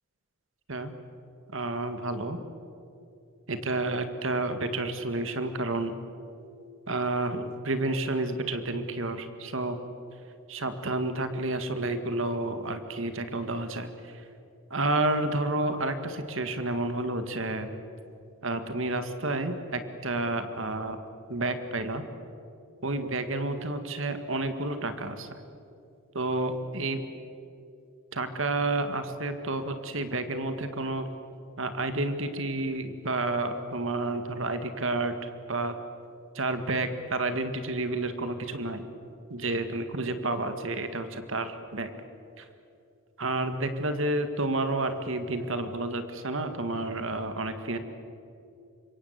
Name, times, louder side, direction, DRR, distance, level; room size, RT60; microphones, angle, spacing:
voice 1, 1.5-2.4 3.5-5.9 6.9-9.8 10.5-13.9 14.7-17.7 18.4-21.0 21.3-22.0 22.8-25.3 26.1-27.0 28.1-31.1 31.6-35.1 35.5-35.7 36.4-38.8 39.3-41.9 42.4-42.5 43.2-47.8, right 2 dB, 65° right, 9 dB, 2.0 m, -30 dB
26.0 x 23.5 x 8.3 m, 2.7 s
head